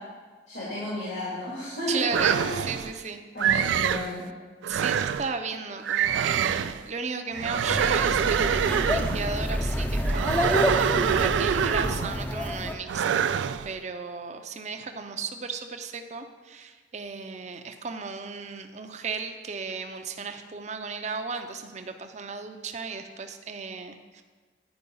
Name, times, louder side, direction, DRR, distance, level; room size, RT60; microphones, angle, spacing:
voice 1, 0.5-2.0 2.3-2.6 3.3-4.2, left 1 dB, 75° left, -8 dB, 2.6 m, -33 dB
voice 2, 1.9-3.7 4.7-13.4 13.6-24.2, right 5 dB, 40° right, 6 dB, 0.6 m, -35 dB
sound 1, 2.1-2.9 3.4-4.1 4.6-5.3 5.8-6.8 7.3-9.3 10.0-12.2 12.9-13.7, right 8 dB, 90° right, 0.3 m, -25 dB
sound 2, 7.7-12.7, equal, 10° left, 0.5 m, -28 dB
9.8 x 4.8 x 5.4 m, 1.4 s
head